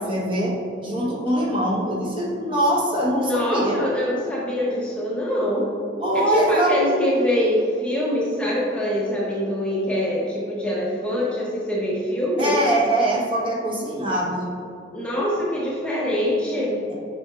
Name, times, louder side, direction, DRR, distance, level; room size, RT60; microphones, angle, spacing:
voice 1, 0.0-3.8 6.0-6.7 12.4-14.5, right 1 dB, 25° right, -4 dB, 1.1 m, -23 dB
voice 2, 3.1-5.7 6.1-12.6 14.9-16.8, equal, 5° left, -6 dB, 0.7 m, -24 dB
7.6 x 5.7 x 2.4 m, 2.6 s
head